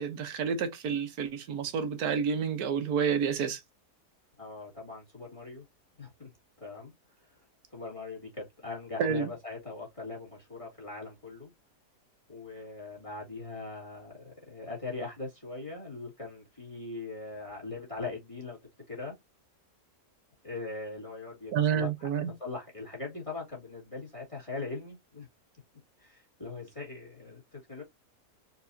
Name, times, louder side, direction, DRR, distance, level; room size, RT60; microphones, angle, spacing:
voice 1, 0.0-3.6 9.0-9.3 21.5-22.3, right 7 dB, 70° right, 1.5 m, -29 dB
voice 2, 4.4-5.6 6.0-6.3 6.6-6.9 7.2-7.3 7.7-11.5 12.3-18.6 18.9-19.2 20.4-25.3 26.0-27.8, left 3 dB, 20° left, 2.1 m, -41 dB
4.5 x 4.1 x 2.6 m
omnidirectional pair, 1.7 m